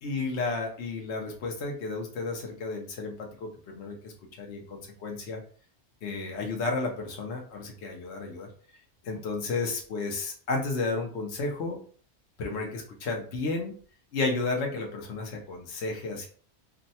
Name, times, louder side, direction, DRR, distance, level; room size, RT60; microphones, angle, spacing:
voice 1, 0.0-3.1 3.4-4.1 4.4-5.4 6.0-8.5 9.0-11.8 12.4-13.7 14.1-16.3, left 3 dB, 70° left, 1 dB, 1.0 m, -32 dB
2.6 x 2.1 x 4.0 m, 0.44 s
omnidirectional pair, 1.2 m